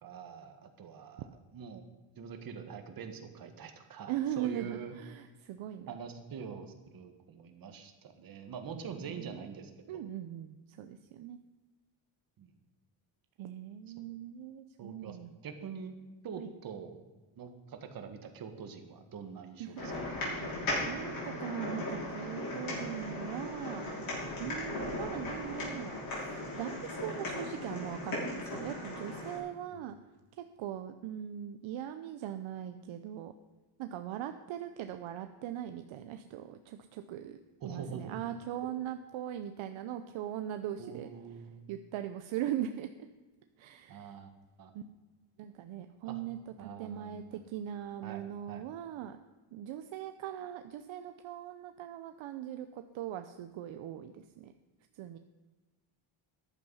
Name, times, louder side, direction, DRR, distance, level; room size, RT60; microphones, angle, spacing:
voice 1, 0.0-1.8 2.2-4.9 5.9-10.0 12.4-12.5 14.8-15.2 15.4-15.9 16.2-17.0 17.4-19.9 29.7-29.8 37.6-38.2 40.8-41.5 43.9-44.3 44.6-44.7 46.1-46.2 46.6-47.4 48.0-48.6, right 6 dB, 45° right, 7 dB, 1.7 m, -45 dB
voice 2, 4.1-5.9 8.7-9.5 9.9-11.4 13.4-15.3 16.4-16.5 19.6-19.9 20.3-23.9 24.4-30.0 30.6-33.3 33.8-37.4 37.6-41.1 41.7-42.9 43.6-44.1 44.7-44.8 45.4-49.2 49.5-54.5 54.9-55.2, right 11 dB, 65° right, 8 dB, 0.8 m, -40 dB
sound 1, 19.8-29.4, left 1 dB, 45° left, 5.8 m, -37 dB
13.5 x 11.0 x 5.6 m, 1.2 s
cardioid pair, 175°, 50 cm